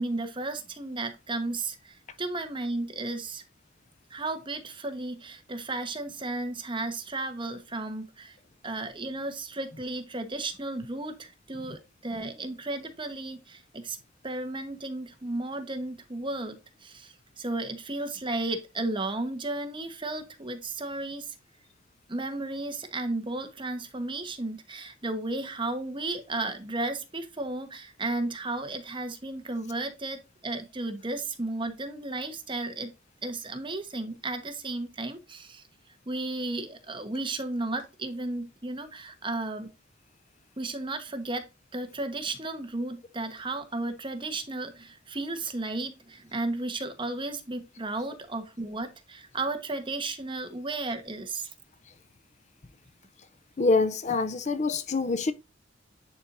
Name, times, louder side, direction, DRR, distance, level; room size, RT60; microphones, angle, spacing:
voice 1, 0.0-3.4 4.1-8.4 8.6-14.0 14.2-21.3 22.1-32.9 33.2-35.7 36.1-39.7 40.6-51.5, right 2 dB, 25° right, 1.2 m, -34 dB
voice 2, 53.6-55.3, left 3 dB, 40° left, 0.5 m, -25 dB
10.0 x 4.5 x 2.6 m
head